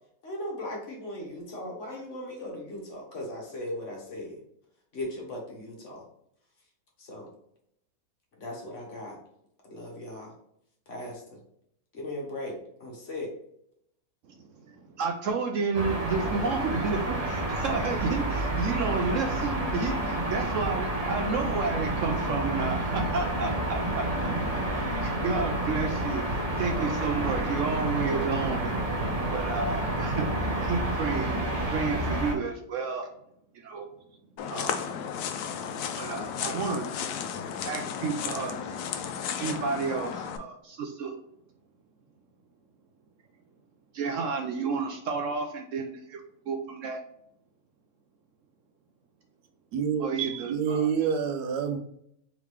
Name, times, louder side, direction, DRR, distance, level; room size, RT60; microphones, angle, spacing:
voice 1, 0.2-4.4 4.9-6.0 7.0-7.3 8.4-9.2 9.6-10.3 10.9-11.4 11.9-13.3, left 1 dB, 55° left, 1.5 m, -38 dB
voice 2, 14.2-24.0 24.7-33.1 33.5-33.9 34.5-34.8 36.0-36.9 37.6-38.8 39.3-41.2 43.9-47.0 50.0-50.9, right 4 dB, 70° right, 0.8 m, -31 dB
sound 1, 15.7-32.3, right 1 dB, 30° right, 0.9 m, -29 dB
sound 2, 34.4-40.4, left 7 dB, 90° left, 1.1 m, -34 dB
voice 3, 49.7-51.8, right 7 dB, 90° right, 1.2 m, -28 dB
3.7 x 3.5 x 3.2 m
omnidirectional pair, 1.6 m